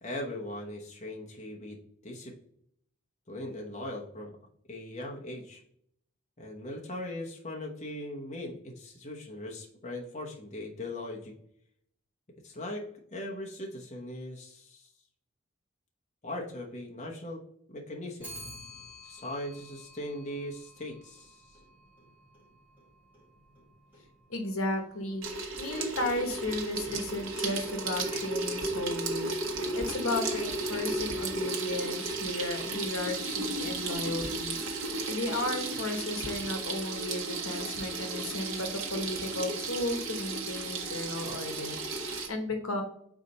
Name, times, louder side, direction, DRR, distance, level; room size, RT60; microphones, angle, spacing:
voice 1, 0.0-1.8 2.0-2.3 3.3-4.3 4.7-5.6 6.4-11.3 12.4-12.8 13.1-14.9 16.2-17.4 17.7-18.3 19.0-21.6, left 1 dB, 30° left, -1 dB, 1.0 m, -39 dB
Clock, 18.2-27.6, equal, 10° right, 2.1 m, -52 dB
voice 2, 24.3-25.3 25.6-34.5 35.1-42.8, left 2 dB, 80° left, 5 dB, 1.2 m, -34 dB
Water tap faucet / Sink (filling or washing), 25.2-42.3, right 3 dB, 65° right, 1.1 m, -34 dB
4.9 x 4.2 x 5.2 m, 0.68 s
head